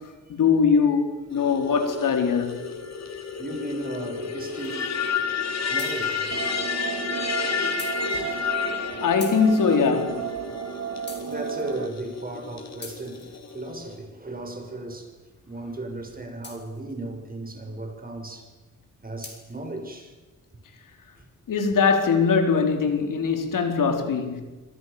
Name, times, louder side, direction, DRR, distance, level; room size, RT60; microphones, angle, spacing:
voice 1, 0.4-2.6 9.0-10.3 21.5-24.4, left 5 dB, 80° left, 4.5 m, -21 dB
sound 1, 1.3-14.0, left 5 dB, 55° left, 4.4 m, -31 dB
voice 2, 3.4-6.6 11.1-15.1 15.5-18.5 19.0-20.1, right 2 dB, 25° right, 6.8 m, -36 dB
sound 2, 4.6-5.2 5.8-6.5 6.9-7.0 7.8-8.8 9.2-10.2 11.1-12.0 12.8-14.0 16.4-17.1 19.2-19.7, left 3 dB, 35° left, 7.4 m, -44 dB
sound 3, 6.3-11.9, right 8 dB, 70° right, 2.7 m, -33 dB
27.5 x 25.0 x 7.1 m
cardioid pair, 105°, 32 cm